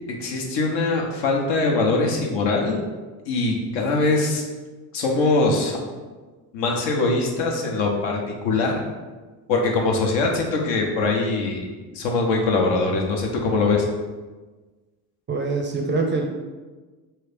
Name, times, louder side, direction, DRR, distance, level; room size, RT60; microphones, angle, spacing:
voice 1, 0.2-2.8 3.3-4.4 4.9-5.8 6.5-8.8 9.5-13.8, left 3 dB, 70° left, 0 dB, 0.9 m, -22 dB
voice 2, 15.3-16.2, right 3 dB, 25° right, 2 dB, 0.4 m, -24 dB
3.1 x 2.8 x 3.4 m, 1.3 s
supercardioid pair, 80°, 45 cm